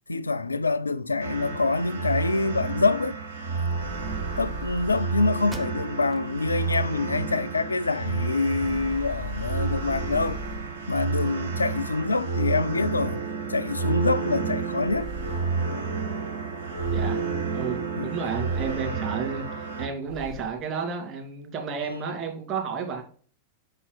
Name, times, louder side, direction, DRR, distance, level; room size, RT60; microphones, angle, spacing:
voice 1, 0.1-3.2 4.4-10.4 10.9-13.2 13.5-15.1 18.0-18.1 21.8-22.0, left 3 dB, 80° left, 0.3 m, -26 dB
sound 1, 1.2-19.9, right 5 dB, 70° right, 1.1 m, -30 dB
sound 2, 3.7-5.2 8.6-10.9 14.8-15.7 16.7-17.4 18.4-19.1 20.1-20.6, equal, 50° right, 1.4 m, -38 dB
sound 3, 5.5-6.3 6.8-6.9 7.4-8.3, right 2 dB, 10° right, 0.7 m, -44 dB
voice 2, 16.9-17.2 17.5-23.0, right 5 dB, 35° right, 2.5 m, -32 dB
5.8 x 4.5 x 5.1 m
figure-of-eight pair, 90°, 0 cm